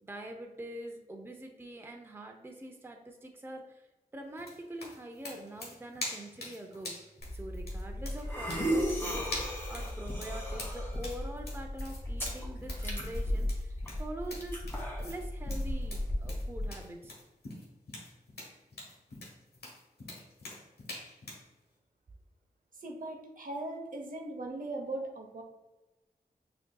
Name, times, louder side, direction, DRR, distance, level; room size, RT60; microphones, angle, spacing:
voice 1, 0.0-3.9 4.1-6.9 7.3-9.3 9.7-14.6 15.0-17.1, right 1 dB, 15° right, 3 dB, 0.5 m, -44 dB
sound 1, 4.4-21.5, left 2 dB, 80° left, 1.2 m, -45 dB
sound 2, 7.2-16.7, equal, 15° left, 1.4 m, -35 dB
voice 2, 22.8-25.4, right 2 dB, 60° right, 3 dB, 0.8 m, -39 dB
6.0 x 2.8 x 2.3 m, 1.1 s
cardioid pair, 55°, 16 cm